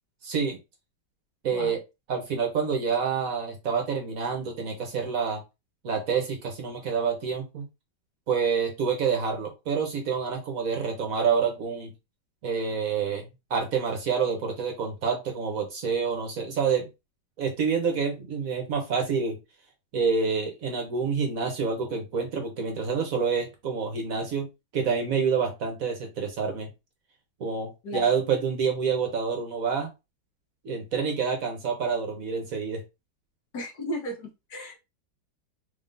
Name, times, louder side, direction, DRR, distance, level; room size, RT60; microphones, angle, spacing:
voice 1, 0.2-0.6 1.4-1.8 2.1-5.4 5.8-7.7 8.3-11.9 12.4-16.9 17.4-19.4 19.9-24.5 24.7-26.7 27.4-29.9 30.6-32.8, right 6 dB, 55° right, 3 dB, 1.2 m, -27 dB
voice 2, 33.5-34.8, equal, 65° left, 1 dB, 1.6 m, -35 dB
3.6 x 3.5 x 2.6 m, 0.24 s
omnidirectional pair, 1.9 m